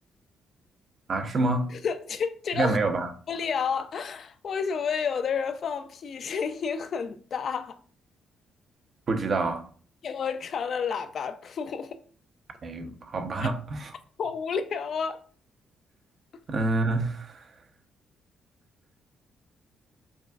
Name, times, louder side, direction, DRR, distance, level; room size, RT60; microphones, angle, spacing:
voice 1, 1.1-1.7 2.6-3.1 9.1-9.7 12.6-13.9 16.5-17.5, right 2 dB, 45° right, 0.6 m, -27 dB
voice 2, 1.7-2.8 3.3-7.8 10.0-12.0 13.4-13.5 14.2-15.2, left 6 dB, 55° left, 0.4 m, -30 dB
5.1 x 2.5 x 2.3 m
cardioid pair, 90°, 0 cm